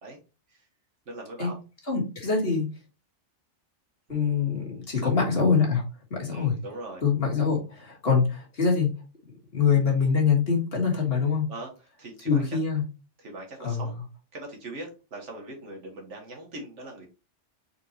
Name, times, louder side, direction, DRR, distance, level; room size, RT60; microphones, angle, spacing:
voice 1, 1.1-1.6 4.1-5.1 6.3-7.0 11.5-12.6 13.2-14.0 14.3-17.1, right 2 dB, 80° right, 1 dB, 1.8 m, -41 dB
voice 2, 1.9-2.7 4.1-5.8 6.1-6.6 7.0-9.0 9.5-11.5 12.3-12.8 13.6-13.8, left 5 dB, 55° left, -1 dB, 1.8 m, -24 dB
4.3 x 4.0 x 2.9 m, 0.31 s
omnidirectional pair, 1.2 m